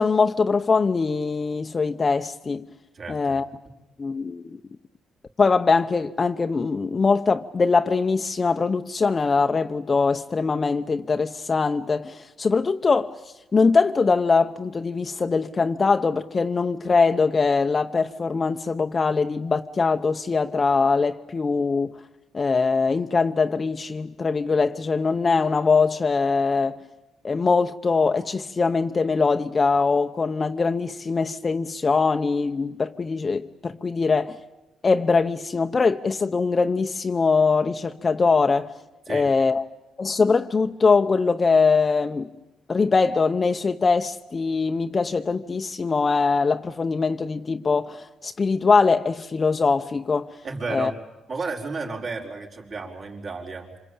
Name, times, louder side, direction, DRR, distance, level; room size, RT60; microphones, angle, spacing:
voice 1, 0.0-2.7 3.1-3.5 4.0-4.5 5.4-13.1 13.5-21.9 22.3-26.8 27.2-34.4 34.8-38.7 39.1-39.6 40.0-42.3 42.7-50.3 50.7-50.9, left 4 dB, 35° left, 0.9 m, -22 dB
voice 2, 2.9-3.4 39.1-39.3 50.4-51.0 51.3-53.7, right 4 dB, 50° right, 5.1 m, -32 dB
26.5 x 26.0 x 8.7 m
cardioid pair, 90°, 0 cm